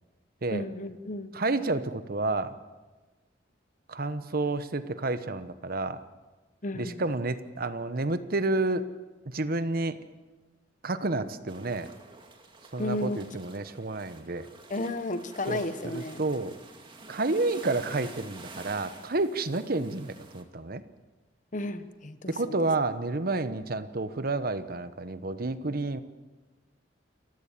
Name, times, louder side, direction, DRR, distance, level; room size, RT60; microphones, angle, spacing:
voice 1, 0.5-1.3 6.6-7.0 12.8-13.2 14.7-16.2 21.5-22.6, left 1 dB, 45° left, 12 dB, 1.1 m, -33 dB
voice 2, 1.3-2.6 3.9-6.0 6.7-8.9 9.2-10.0 10.8-11.9 12.7-14.5 15.5-16.5 17.1-20.8 22.3-26.0, right 2 dB, 55° right, 12 dB, 1.1 m, -30 dB
sound 1, 11.5-20.4, right 3 dB, 30° right, 2.3 m, -49 dB
28.5 x 15.5 x 7.4 m, 1.2 s
head